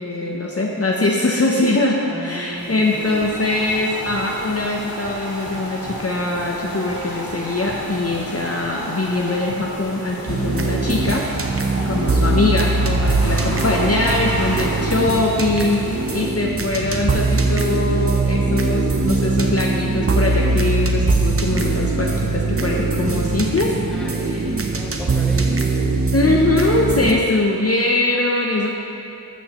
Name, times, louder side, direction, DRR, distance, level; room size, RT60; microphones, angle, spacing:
voice 1, 0.0-11.6 11.9-23.8 24.1-24.7 26.1-28.7, left 2 dB, 40° left, -2 dB, 0.7 m, -22 dB
voice 2, 2.0-3.3 11.6-12.1 15.3-15.8 23.9-25.8, equal, ahead, -2 dB, 1.2 m, -35 dB
sound 1, 2.5-16.2, equal, 65° left, 2.1 m, -32 dB
sound 2, 10.3-27.1, right 3 dB, 35° right, 0.7 m, -21 dB
13.0 x 6.2 x 3.0 m, 2.7 s
wide cardioid pair, 45°, 37 cm